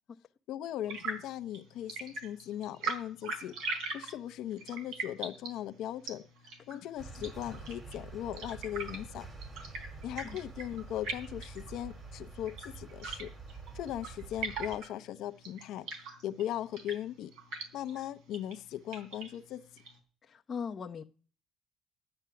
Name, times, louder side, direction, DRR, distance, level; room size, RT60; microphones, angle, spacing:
voice 1, 0.5-6.2 6.7-9.3 10.0-15.9 16.2-17.3 17.7-19.7, left 12 dB, 70° left, 0.7 m, -39 dB
sound 1, 0.8-20.0, right 4 dB, 90° right, 3.5 m, -43 dB
sound 2, 7.0-14.8, right 3 dB, 30° right, 2.3 m, -47 dB
voice 2, 20.2-21.0, left 6 dB, 35° left, 0.7 m, -39 dB
12.5 x 8.9 x 5.8 m
cardioid pair, 120°, 0 cm